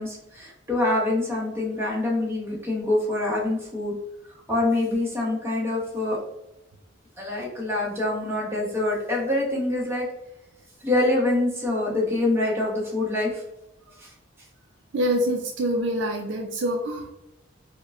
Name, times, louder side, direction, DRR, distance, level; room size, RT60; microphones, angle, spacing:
voice 1, 0.0-3.9 4.5-6.2 7.2-10.1 10.8-13.4, left 2 dB, 10° right, -4 dB, 0.9 m, -25 dB
voice 2, 14.9-17.1, equal, 60° right, 3 dB, 0.4 m, -25 dB
5.0 x 2.1 x 2.4 m, 0.90 s
head